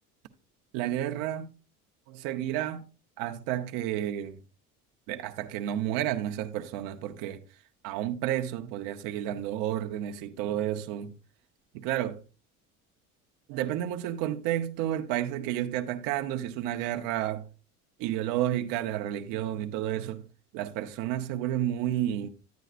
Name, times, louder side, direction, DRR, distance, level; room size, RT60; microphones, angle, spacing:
voice 1, 0.7-1.5 2.1-2.9 3.2-4.4 5.1-7.4 7.8-11.1 11.7-12.2 13.5-17.5 18.0-20.2 20.5-22.3, right 12 dB, 85° right, 0.9 m, -31 dB
10.5 x 9.1 x 2.5 m
cardioid pair, 125°, 32 cm